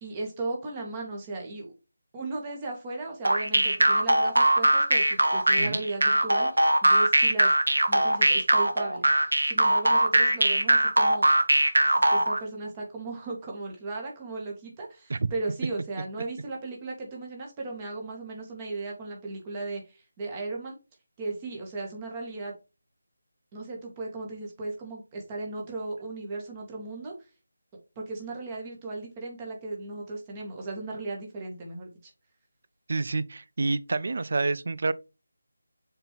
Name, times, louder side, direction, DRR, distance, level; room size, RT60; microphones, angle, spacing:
voice 1, 0.0-1.7 2.1-6.5 6.8-7.6 7.9-9.1 9.5-11.3 11.8-20.8 21.2-22.5 23.5-27.1 28.0-32.1, right 3 dB, 20° right, 2.0 m, -36 dB
sound 1, 3.2-12.4, right 1 dB, 75° right, 1.1 m, -21 dB
voice 2, 32.9-34.9, right 3 dB, 50° right, 0.5 m, -28 dB
6.6 x 4.5 x 3.6 m
figure-of-eight pair, 160°, 0 cm